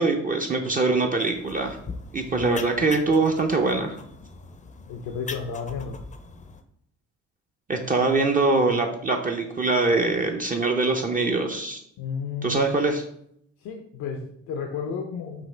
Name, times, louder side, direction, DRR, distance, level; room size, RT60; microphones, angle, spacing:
voice 1, 0.0-1.8 2.1-4.0 7.7-11.8 12.4-13.0, right 3 dB, 30° right, 2 dB, 0.5 m, -23 dB
sound 1, 1.3-6.6, left 4 dB, 25° left, 0.5 m, -41 dB
voice 2, 4.9-6.0 12.0-12.7 13.6-15.5, left 5 dB, 80° left, 3 dB, 0.6 m, -32 dB
5.3 x 2.8 x 3.2 m, 0.71 s
cardioid pair, 90°, 30 cm